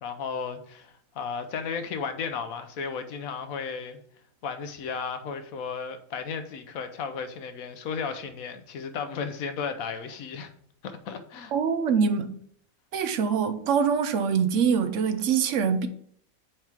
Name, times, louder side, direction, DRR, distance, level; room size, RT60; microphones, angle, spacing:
voice 1, 0.0-4.0 4.4-10.5 10.8-11.5, left 6 dB, 85° left, 1.2 m, -34 dB
voice 2, 11.5-12.4 12.9-15.9, right 6 dB, 70° right, 0.9 m, -24 dB
4.8 x 4.6 x 5.7 m
omnidirectional pair, 1.4 m